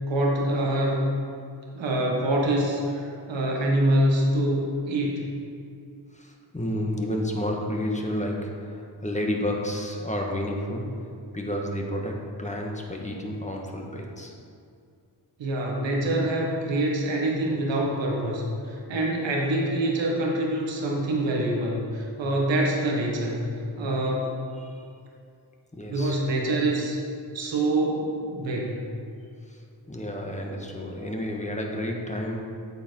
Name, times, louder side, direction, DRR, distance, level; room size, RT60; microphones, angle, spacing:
voice 1, 0.1-1.1 1.7-5.3 15.4-23.5 23.7-24.3 25.9-27.0 27.3-28.8, right 1 dB, 85° right, -1 dB, 1.6 m, -25 dB
voice 2, 6.1-10.9 11.3-14.3 24.6-24.9 25.7-26.2 29.5-32.4, left 1 dB, 15° left, 0 dB, 1.6 m, -31 dB
8.6 x 7.2 x 4.7 m, 2.4 s
cardioid pair, 60°, 43 cm